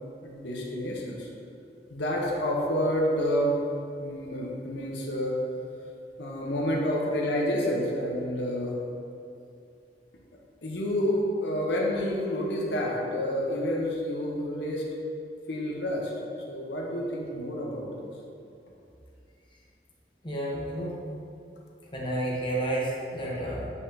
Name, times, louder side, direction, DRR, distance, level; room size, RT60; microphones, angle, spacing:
voice 1, 0.2-1.3 1.9-3.6 4.0-5.4 6.2-8.8 10.6-14.9 15.5-16.1 16.5-18.1, equal, 90° left, -2 dB, 1.0 m, -29 dB
voice 2, 20.2-20.9 21.9-23.7, right 1 dB, 30° left, -5 dB, 1.1 m, -30 dB
8.2 x 5.4 x 2.8 m, 2.6 s
head